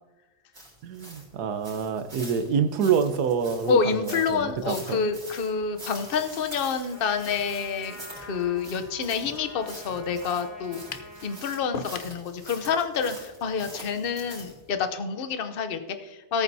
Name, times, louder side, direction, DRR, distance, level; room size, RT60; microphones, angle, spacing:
sound 1, 0.5-14.7, right 1 dB, 50° right, 4.1 m, -45 dB
voice 1, 0.8-5.0, right 6 dB, 85° right, 9 dB, 1.4 m, -27 dB
voice 2, 3.7-16.4, left 6 dB, 45° left, 8 dB, 0.8 m, -28 dB
Trumpet, 6.9-11.9, left 2 dB, 10° left, 3.5 m, -46 dB
sound 2, 10.9-11.2 11.7-12.2, left 5 dB, 70° left, 0.5 m, -35 dB
18.0 x 9.0 x 2.8 m, 1.1 s
omnidirectional pair, 1.7 m